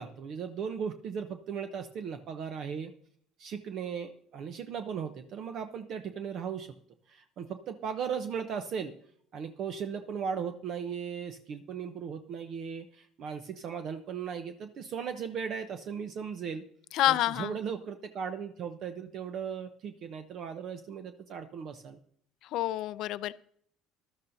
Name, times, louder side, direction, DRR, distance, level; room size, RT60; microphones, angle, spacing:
voice 1, 0.0-2.9 3.4-6.7 7.1-8.9 9.3-16.6 17.1-22.0, right 7 dB, 55° right, 8 dB, 0.8 m, -37 dB
voice 2, 16.9-17.5 22.5-23.3, left 14 dB, 70° left, 16 dB, 0.4 m, -27 dB
14.5 x 12.0 x 2.7 m, 0.64 s
supercardioid pair, 90°, 0 cm